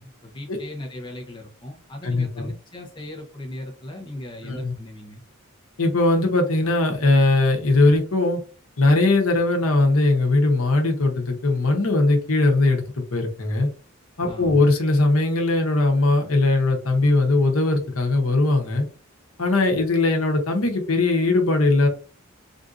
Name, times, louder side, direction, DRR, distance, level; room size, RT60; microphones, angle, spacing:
voice 1, 0.0-5.2 14.3-14.6, left 1 dB, 20° left, 1 dB, 0.7 m, -38 dB
voice 2, 2.0-2.5 4.4-4.7 5.8-8.4 8.8-13.7 14.2-18.9 19.4-21.9, left 2 dB, 80° left, 3 dB, 0.9 m, -20 dB
3.7 x 2.6 x 2.5 m, 0.36 s
head